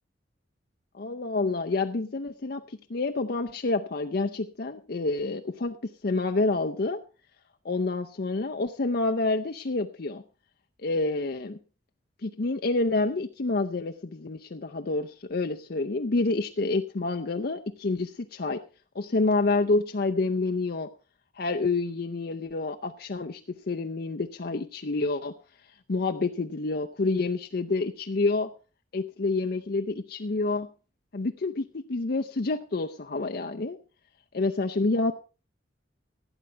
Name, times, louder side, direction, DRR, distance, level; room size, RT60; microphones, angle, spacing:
voice 1, 1.0-7.0 7.6-10.2 10.8-11.6 12.2-18.6 18.9-20.9 21.4-23.4 23.7-25.4 25.9-28.5 28.9-30.7 31.1-33.8 34.3-35.1, left 3 dB, 55° left, 5 dB, 0.6 m, -28 dB
16.0 x 9.0 x 4.5 m, 0.35 s
head